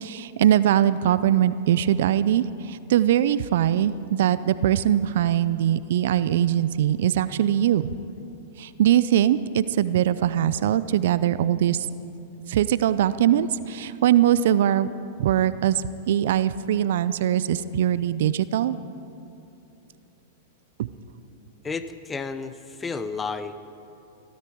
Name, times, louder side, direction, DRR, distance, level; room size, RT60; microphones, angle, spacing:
voice 1, 0.0-7.9 8.6-11.9 12.5-14.9 15.2-18.8 20.8-20.9, right 11 dB, 70° right, 15 dB, 0.5 m, -22 dB
voice 2, 21.6-23.6, left 4 dB, 15° left, 11 dB, 0.8 m, -32 dB
22.5 x 13.5 x 4.6 m, 2.8 s
hypercardioid pair, 110°, 0 cm